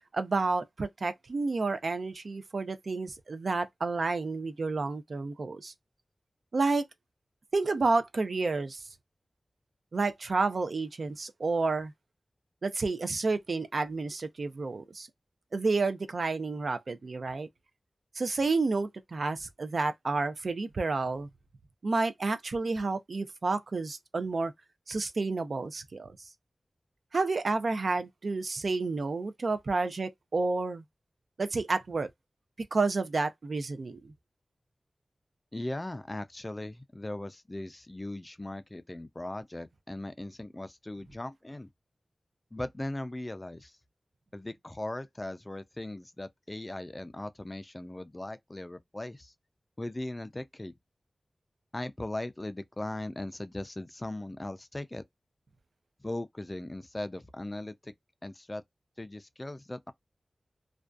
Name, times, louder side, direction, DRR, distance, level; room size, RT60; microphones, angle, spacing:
voice 1, 0.1-5.7 6.5-6.9 7.5-8.8 9.9-11.9 12.6-15.1 15.5-17.5 18.2-21.3 21.8-24.5 24.9-26.2 27.1-30.8 31.4-32.1 32.7-34.1, right 3 dB, 70° right, 0.4 m, -30 dB
voice 2, 35.5-41.7 42.5-43.8 44.3-49.3 49.8-50.7 51.7-55.0 56.0-57.9 58.2-58.6 59.0-59.9, left 1 dB, 25° left, 0.3 m, -39 dB
2.5 x 2.2 x 2.3 m
wide cardioid pair, 100°, 0 cm